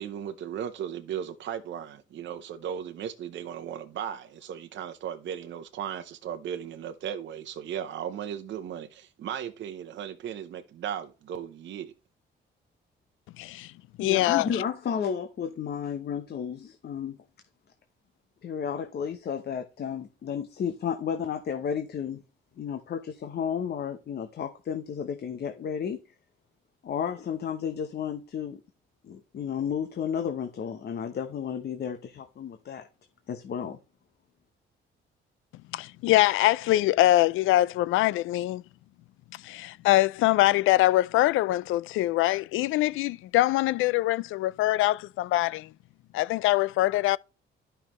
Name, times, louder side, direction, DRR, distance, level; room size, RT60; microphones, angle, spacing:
voice 1, 0.0-11.9, right 9 dB, 70° right, 0.9 m, -36 dB
voice 2, 13.4-13.7 14.0-14.6 35.7-38.6 39.4-45.7 46.1-47.2, left 16 dB, 85° left, 0.4 m, -23 dB
voice 3, 14.0-17.2 18.4-22.2 22.6-26.0 26.8-28.6 29.0-32.9 33.3-33.8, left 7 dB, 55° left, 1.0 m, -32 dB
12.0 x 5.7 x 3.1 m
cardioid pair, 90°, 20 cm